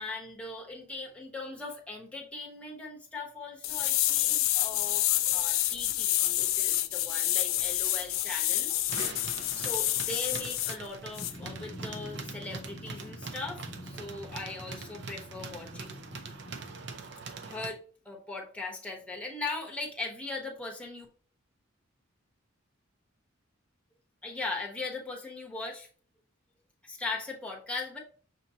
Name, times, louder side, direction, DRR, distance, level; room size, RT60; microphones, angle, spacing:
voice 1, 0.0-8.7 9.5-16.0 17.4-21.1 24.2-25.9 26.8-28.0, left 3 dB, 5° left, -1 dB, 1.0 m, -39 dB
sound 1, 3.6-10.8 11.2-11.3, left 14 dB, 80° left, 0.4 m, -28 dB
sound 2, 8.9-17.7, right 4 dB, 55° right, 0.6 m, -43 dB
Drum, 11.2-17.6, left 1 dB, 35° left, 0.6 m, -46 dB
6.3 x 2.9 x 2.8 m, 0.43 s
head